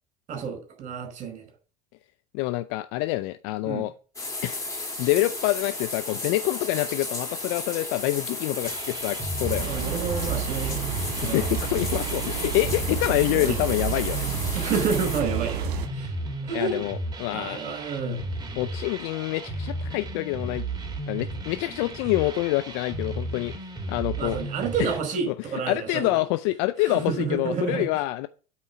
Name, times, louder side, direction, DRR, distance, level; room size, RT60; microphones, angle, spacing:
voice 1, 0.3-1.4 3.6-3.8 9.6-10.8 11.2-11.5 13.3-13.6 14.5-16.1 16.4-16.8 17.3-18.2 24.2-26.1 26.8-27.9, right 5 dB, 40° right, 5.0 m, -29 dB
voice 2, 2.3-3.9 4.4-9.7 11.2-14.3 16.5-17.6 18.6-20.6 21.1-23.5 23.9-24.4 24.8-24.9 25.3-25.4 25.7-28.3, left 18 dB, 55° left, 0.5 m, -26 dB
sound 1, 4.1-15.2, left 2 dB, 15° left, 3.7 m, -34 dB
sound 2, 8.6-25.0, right 2 dB, 20° right, 2.3 m, -34 dB
sound 3, 9.4-15.9, right 11 dB, 55° right, 1.8 m, -32 dB
8.9 x 4.5 x 7.1 m
hypercardioid pair, 75°, 20 cm